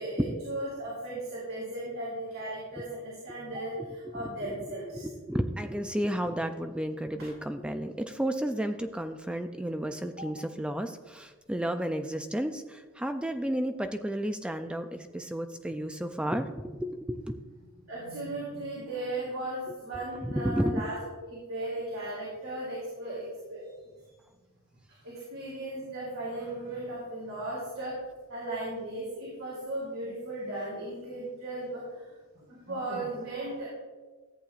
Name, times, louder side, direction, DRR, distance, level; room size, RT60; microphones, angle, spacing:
voice 1, 0.0-5.1 10.2-10.3 17.9-23.6 24.9-27.9 28.3-32.1 32.5-33.7, right 1 dB, 80° right, -6 dB, 3.1 m, -36 dB
voice 2, 4.9-17.4 19.7-19.8 20.2-20.8, equal, 5° right, 7 dB, 0.4 m, -32 dB
14.0 x 9.0 x 2.4 m, 1.3 s
head